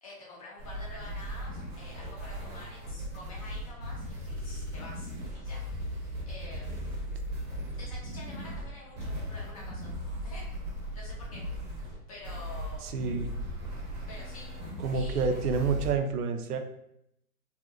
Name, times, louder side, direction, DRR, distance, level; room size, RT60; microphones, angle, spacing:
voice 1, 0.0-5.6 6.3-6.9 7.7-10.4 10.9-11.5 12.1-12.9 14.1-14.5 14.9-15.3, left 2 dB, 25° left, -5 dB, 0.6 m, -48 dB
sound 1, 0.6-15.9, equal, 25° right, 0.8 m, -37 dB
voice 2, 12.8-13.3 14.8-16.6, right 5 dB, 80° right, 7 dB, 0.6 m, -29 dB
2.7 x 2.5 x 2.4 m, 0.77 s
hypercardioid pair, 155°, 46 cm